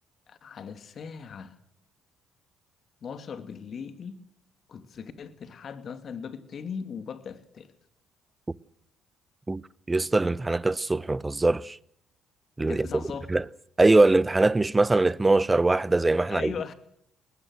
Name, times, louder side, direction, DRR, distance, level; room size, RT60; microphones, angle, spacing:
voice 1, 0.3-1.5 3.0-4.2 4.7-7.7 12.7-13.3 16.3-16.7, left 6 dB, 55° left, 2.5 m, -38 dB
voice 2, 9.9-11.8 12.6-12.9 13.3-13.4 13.8-16.5, right 2 dB, 20° right, 0.9 m, -22 dB
22.5 x 20.0 x 6.5 m
hypercardioid pair, 60°, 0 cm